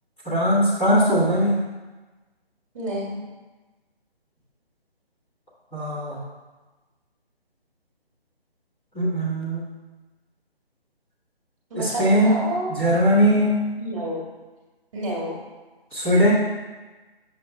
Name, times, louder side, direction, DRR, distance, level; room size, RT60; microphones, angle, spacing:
voice 1, 0.2-1.6 5.7-6.2 8.9-9.6 11.7-12.4 12.7-13.6 15.9-16.3, equal, 10° left, -14 dB, 1.2 m, -20 dB
voice 2, 2.7-3.2 11.7-12.8 13.8-14.2 14.9-15.4, right 1 dB, 30° right, -3 dB, 1.6 m, -29 dB
7.3 x 6.1 x 3.3 m, 1.2 s
figure-of-eight pair, 150°, 31 cm